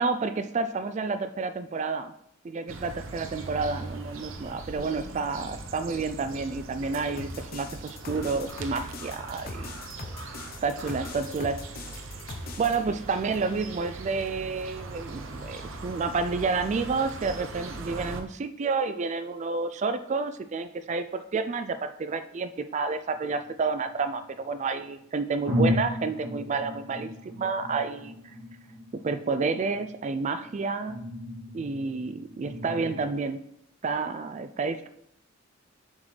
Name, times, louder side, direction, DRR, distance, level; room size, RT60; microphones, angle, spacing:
voice 1, 0.0-2.1 2.4-9.7 10.6-11.6 12.6-28.2 28.9-31.0 31.5-33.4 33.8-34.9, right 4 dB, 35° right, 11 dB, 0.3 m, -30 dB
sound 1, 2.7-18.2, right 3 dB, 75° right, 0.8 m, -41 dB
sound 2, 7.2-12.8, left 3 dB, 50° left, 0.8 m, -40 dB
sound 3, 23.1-24.4 25.0-25.1 25.5-33.0, left 1 dB, 55° right, 1.8 m, -34 dB
7.3 x 6.2 x 3.3 m, 0.76 s
head